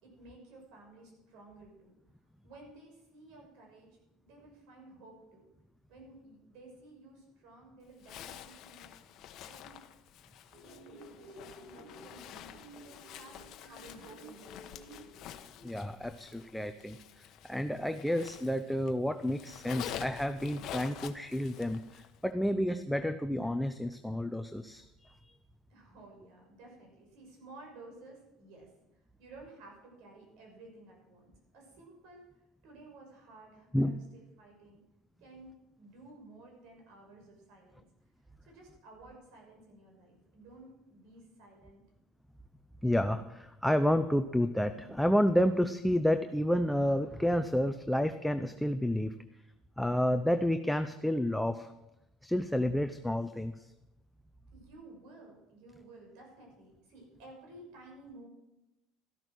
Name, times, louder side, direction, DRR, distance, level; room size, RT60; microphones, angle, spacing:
voice 1, 0.0-1.9 2.4-5.5 5.9-8.9 9.4-9.8 10.2-15.1 25.7-28.7 29.2-32.3 32.6-34.8 35.2-37.8 38.4-41.8 54.5-58.3, right 2 dB, 70° right, 0 dB, 6.3 m, -54 dB
Zipper (clothing), 8.0-18.9 19.2-22.2, left 10 dB, 55° left, 1.1 m, -48 dB
sound 1, 10.5-15.7, right 2 dB, 50° right, 7.4 m, -53 dB
voice 2, 15.6-25.3 33.7-34.0 42.8-49.1 49.8-51.7 52.2-53.7, equal, ahead, 8 dB, 0.6 m, -30 dB
13.5 x 12.5 x 6.2 m, 0.94 s
cardioid pair, 130°, 0 cm